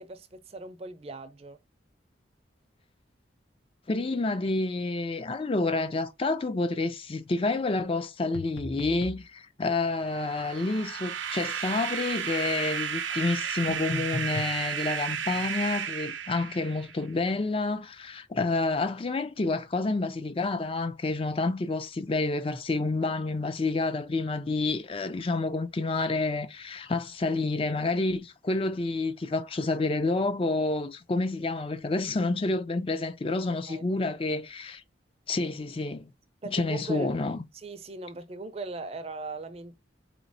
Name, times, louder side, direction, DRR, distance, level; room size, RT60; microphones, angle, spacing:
voice 1, 0.0-1.6 13.1-13.3 33.7-33.9 36.4-37.1 37.5-39.8, right 3 dB, 30° right, 0.5 m, -39 dB
voice 2, 3.9-34.8 35.3-36.1 36.5-37.4, left 3 dB, 30° left, 0.4 m, -29 dB
sound 1, 8.3-9.2 13.7-14.6, left 2 dB, 80° left, 0.9 m, -37 dB
sound 2, 10.0-17.0, right 7 dB, 85° right, 0.6 m, -33 dB
3.9 x 3.1 x 2.6 m
head